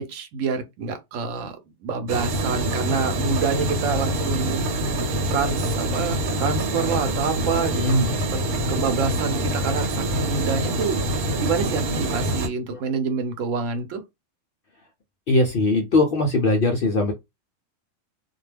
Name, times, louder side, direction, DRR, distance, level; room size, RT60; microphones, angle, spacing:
voice 1, 0.0-1.6 1.8-8.0 8.3-8.4 8.7-11.0 11.3-14.0, right 5 dB, 65° right, 0.9 m, -27 dB
sound 1, 2.1-12.5, right 1 dB, 85° right, 1.2 m, -25 dB
voice 2, 15.3-17.1, left 2 dB, 70° left, 0.5 m, -20 dB
2.3 x 2.2 x 3.2 m
omnidirectional pair, 1.5 m